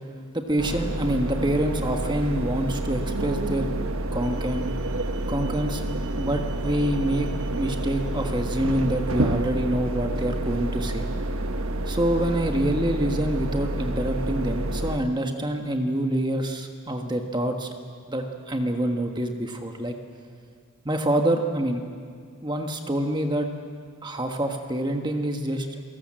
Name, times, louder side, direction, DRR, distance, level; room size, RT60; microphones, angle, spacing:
voice 1, 0.3-3.7 4.1-4.7 5.3-5.8 6.2-11.0 11.9-17.7 18.1-19.9 20.8-21.8 22.4-23.5 24.0-25.8, right 1 dB, 20° right, 4 dB, 1.4 m, -26 dB
sound 1, 0.6-15.0, right 1 dB, 70° right, 1.1 m, -29 dB
28.5 x 18.0 x 7.7 m, 2.1 s
head